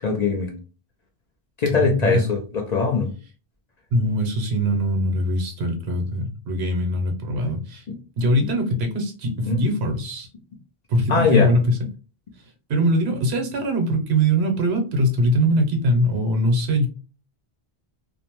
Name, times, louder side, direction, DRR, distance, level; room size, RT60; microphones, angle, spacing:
voice 1, 0.0-0.5 1.6-3.1 9.5-9.6 11.1-11.5, left 4 dB, 50° left, 1 dB, 0.6 m, -21 dB
voice 2, 1.8-2.3 3.9-7.9 8.2-10.3 10.9-11.8 12.7-16.9, equal, 80° right, 4 dB, 1.0 m, -22 dB
2.6 x 2.1 x 2.9 m, 0.35 s
omnidirectional pair, 1.1 m